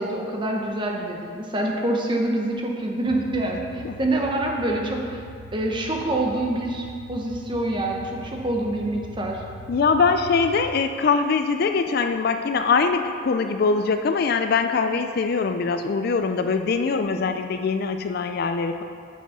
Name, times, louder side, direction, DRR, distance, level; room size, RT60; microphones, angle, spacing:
voice 1, 0.0-5.2 5.5-9.4, right 1 dB, 25° right, 0 dB, 0.8 m, -26 dB
sound 1, 3.0-10.7, right 1 dB, 70° right, 1.0 m, -42 dB
voice 2, 9.7-18.8, left 4 dB, 50° left, 7 dB, 0.3 m, -22 dB
7.1 x 6.1 x 5.5 m, 2.3 s
head